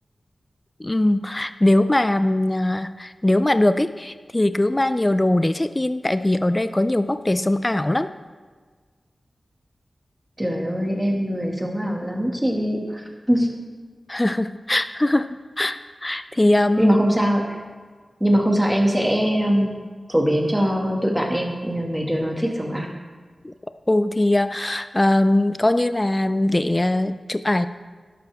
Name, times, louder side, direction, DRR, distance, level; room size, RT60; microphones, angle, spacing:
voice 1, 0.8-8.1 14.1-15.3 15.6-16.9 23.4-23.5 23.9-27.7, left 1 dB, 25° left, 12 dB, 0.4 m, -21 dB
voice 2, 10.4-13.5 16.8-17.6 18.2-19.7 20.1-22.9, equal, 10° right, 0 dB, 2.1 m, -22 dB
12.0 x 12.0 x 3.6 m, 1.5 s
wide cardioid pair, 60°, 0 cm